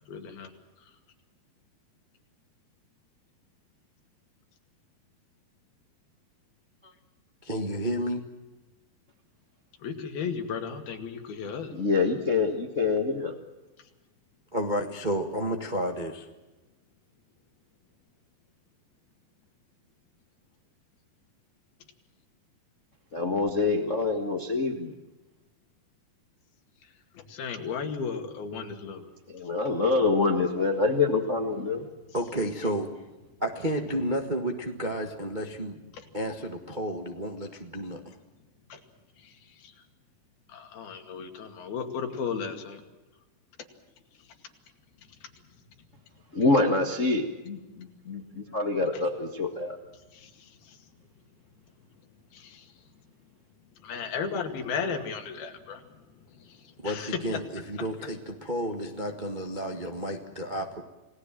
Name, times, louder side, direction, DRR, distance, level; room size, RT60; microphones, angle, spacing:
voice 1, 0.1-0.5 9.8-11.7 27.1-29.0 35.9-36.1 38.7-38.8 39.2-39.7 40.5-42.8 50.1-50.8 52.3-52.7 53.8-55.9 56.3-57.4, left 6 dB, 80° left, 4 dB, 4.2 m, -35 dB
voice 2, 7.4-8.2 14.5-16.3 32.1-32.9 33.4-35.8 36.1-38.2 56.8-60.8, equal, 60° right, 3 dB, 0.4 m, -31 dB
voice 3, 11.7-13.3 23.1-24.9 29.3-31.9 46.3-49.8, left 3 dB, 45° left, 5 dB, 1.0 m, -26 dB
29.5 x 18.5 x 7.6 m, 1.1 s
omnidirectional pair, 4.3 m